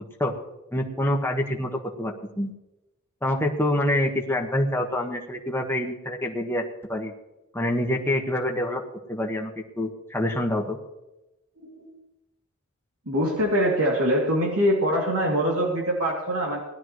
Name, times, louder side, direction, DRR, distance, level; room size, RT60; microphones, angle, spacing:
voice 1, 0.7-1.7 2.0-2.5 3.2-6.6 6.9-7.1 7.5-8.8 9.1-10.8, left 1 dB, 10° left, 1 dB, 1.4 m, -26 dB
voice 2, 11.6-11.9 13.1-16.6, equal, 85° right, -2 dB, 2.7 m, -23 dB
19.0 x 12.5 x 3.2 m, 0.94 s
head